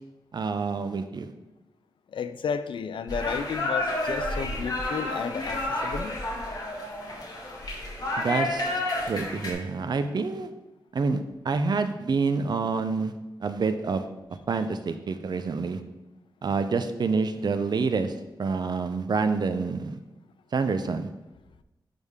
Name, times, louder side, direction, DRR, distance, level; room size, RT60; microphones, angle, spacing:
voice 1, 0.3-1.3 8.2-8.7 9.1-10.5 10.9-11.2 11.4-13.1 13.4-14.1 14.5-15.8 16.4-18.1 18.4-20.0 20.5-21.1, right 4 dB, 60° right, 9 dB, 0.5 m, -27 dB
voice 2, 2.1-6.2, left 6 dB, 85° left, 11 dB, 0.4 m, -32 dB
sound 1, 3.1-9.5, left 1 dB, 50° left, 1.8 m, -30 dB
10.5 x 3.5 x 3.6 m, 0.99 s
wide cardioid pair, 100°, 8 cm